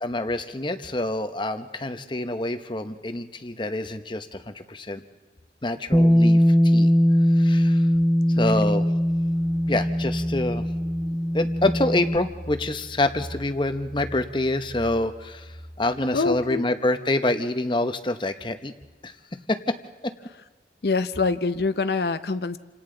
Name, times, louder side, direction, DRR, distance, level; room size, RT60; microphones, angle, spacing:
voice 1, 0.0-5.0 5.6-6.9 7.3-7.9 8.4-8.9 9.7-10.6 11.3-18.7 19.0-19.1 19.5-19.8 20.0-20.1, left 2 dB, 25° left, 9 dB, 0.9 m, -26 dB
Bass guitar, 5.9-12.2, equal, 5° right, 0.6 m, -20 dB
sound 1, 8.8-16.5, equal, 75° right, 4.9 m, -42 dB
voice 2, 16.1-16.7 20.8-22.6, left 4 dB, 65° left, 11 dB, 0.7 m, -25 dB
29.0 x 26.5 x 3.9 m, 1.3 s
head